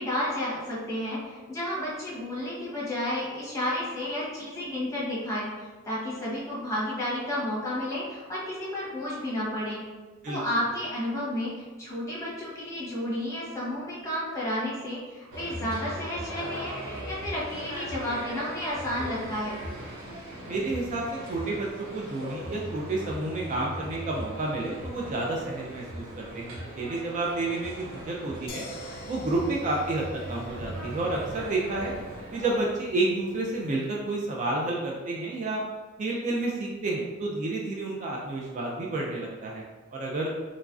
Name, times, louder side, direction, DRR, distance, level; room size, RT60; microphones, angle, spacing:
voice 1, 0.0-5.5 5.8-9.8 10.3-19.6, left 1 dB, 15° left, -7 dB, 0.8 m, -31 dB
sound 1, 15.3-32.6, equal, 80° right, 0.7 m, -39 dB
voice 2, 20.4-28.7 29.1-31.9 32.3-35.6 36.0-39.6 39.9-40.3, right 2 dB, 35° right, -2 dB, 0.3 m, -30 dB
sound 2, 28.5-34.3, left 2 dB, 45° left, 0.4 m, -47 dB
3.0 x 2.4 x 2.3 m, 1.3 s
head